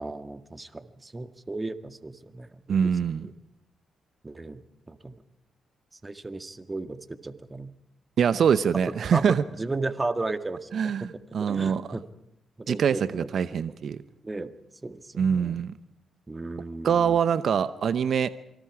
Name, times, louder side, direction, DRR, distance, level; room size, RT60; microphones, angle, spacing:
voice 1, 0.0-2.9 3.2-3.3 4.2-4.6 4.9-5.2 6.0-7.7 8.9-11.1 11.4-12.0 12.6-13.6 14.2-14.5 14.8-15.6 16.3-17.2, right 2 dB, 25° right, 9 dB, 1.9 m, -35 dB
voice 2, 2.7-3.3 8.2-9.4 10.7-11.8 12.7-14.0 15.2-15.7 16.8-18.3, right 7 dB, 60° right, 14 dB, 0.8 m, -24 dB
27.0 x 25.0 x 4.9 m, 0.81 s
hypercardioid pair, 40°, 0 cm